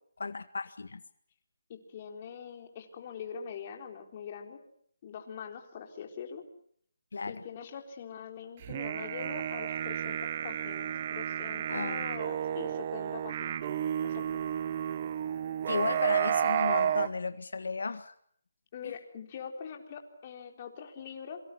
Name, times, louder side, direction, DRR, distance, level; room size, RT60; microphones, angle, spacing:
voice 1, 0.2-1.0 7.1-7.4 11.7-12.0 15.7-18.1 18.8-18.9, left 4 dB, 75° left, 10 dB, 1.7 m, -34 dB
voice 2, 1.7-4.6 5.0-6.4 7.3-13.6 14.0-14.4 18.7-21.4, left 7 dB, 25° left, 3 dB, 4.0 m, -43 dB
sound 1, 8.6-17.1, right 9 dB, 25° right, 0.9 m, -31 dB
27.0 x 24.5 x 6.1 m, 0.65 s
hypercardioid pair, 175°, 0 cm